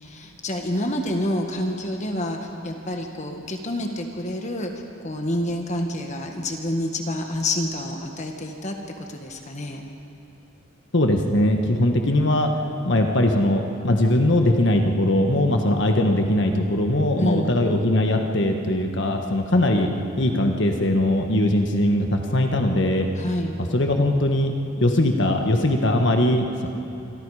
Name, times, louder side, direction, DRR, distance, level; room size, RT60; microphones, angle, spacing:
voice 1, 0.0-4.7 5.0-9.8 17.2-17.5 23.1-23.6, left 1 dB, 35° left, 3 dB, 1.6 m, -28 dB
voice 2, 10.9-19.9 20.2-23.1 23.7-26.7, left 1 dB, 55° left, 3 dB, 1.5 m, -21 dB
27.0 x 23.5 x 5.0 m, 2.8 s
head